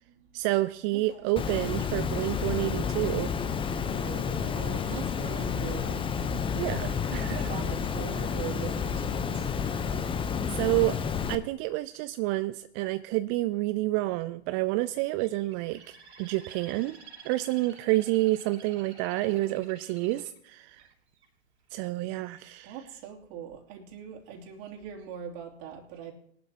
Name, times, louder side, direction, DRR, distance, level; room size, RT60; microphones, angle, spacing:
voice 1, 0.3-3.3 6.5-7.5 10.5-11.0 11.3-17.0 17.2-20.9 21.7-22.8, right 18 dB, 35° right, 14 dB, 0.4 m, -29 dB
voice 2, 0.9-1.3 3.9-6.1 6.8-7.0 7.3-9.4 19.2-19.6 22.6-26.1, right 8 dB, 50° right, 0 dB, 3.0 m, -42 dB
Water, 1.4-11.4, left 6 dB, 15° left, 0.8 m, -30 dB
Bird, 15.2-21.3 21.8-22.2, right 6 dB, 75° right, 3.9 m, -51 dB
21.5 x 11.5 x 2.9 m, 0.71 s
hypercardioid pair, 105°, 33 cm